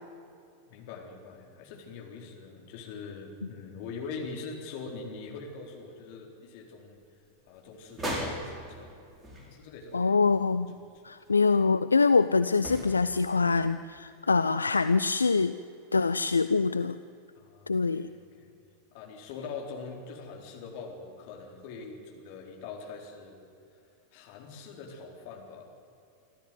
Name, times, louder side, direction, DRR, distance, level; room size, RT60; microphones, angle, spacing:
voice 1, 0.7-7.0 7.5-8.9 9.5-10.2 11.1-11.2 17.4-18.5 18.9-23.4 24.1-25.7, left 4 dB, 50° left, 1 dB, 4.0 m, -43 dB
sound 1, 7.9-10.1 10.3-10.4 12.6-13.6, equal, 15° right, 5.0 m, -38 dB
voice 2, 9.9-10.7 11.0-15.6 15.9-17.0 17.7-18.1, left 4 dB, 80° left, 13 dB, 0.5 m, -24 dB
26.0 x 13.5 x 9.4 m, 2.5 s
figure-of-eight pair, 90°, 0 cm